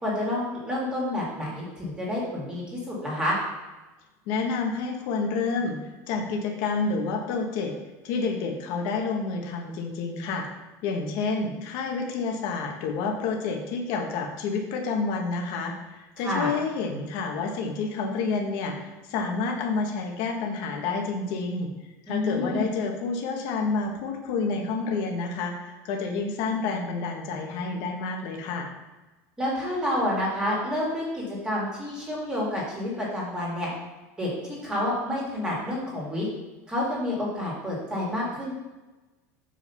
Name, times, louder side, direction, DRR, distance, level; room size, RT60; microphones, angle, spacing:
voice 1, 0.0-3.4 16.2-16.5 22.1-22.7 29.4-33.7 34.2-34.3 34.6-36.3 36.7-38.5, left 1 dB, 10° right, -4 dB, 2.1 m, -29 dB
voice 2, 4.3-5.8 6.1-7.7 8.0-10.5 10.8-21.7 22.1-28.7, left 4 dB, 50° left, 2 dB, 1.2 m, -29 dB
6.4 x 5.1 x 5.6 m, 1.1 s
supercardioid pair, 170°, 9 cm